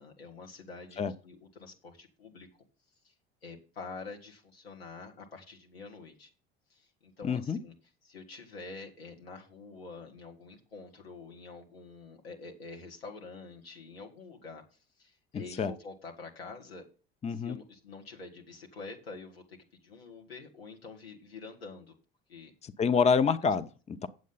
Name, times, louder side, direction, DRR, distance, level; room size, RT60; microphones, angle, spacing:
voice 1, 0.0-2.7 3.0-3.1 3.4-6.3 6.7-7.7 8.0-16.9 17.3-21.9 22.3-22.5, left 4 dB, 90° left, 2.2 m, -47 dB
voice 2, 7.2-7.6 15.3-15.7 17.2-17.6 22.8-24.1, left 6 dB, 20° left, 0.7 m, -27 dB
8.3 x 7.7 x 5.6 m
hypercardioid pair, 70°, 30 cm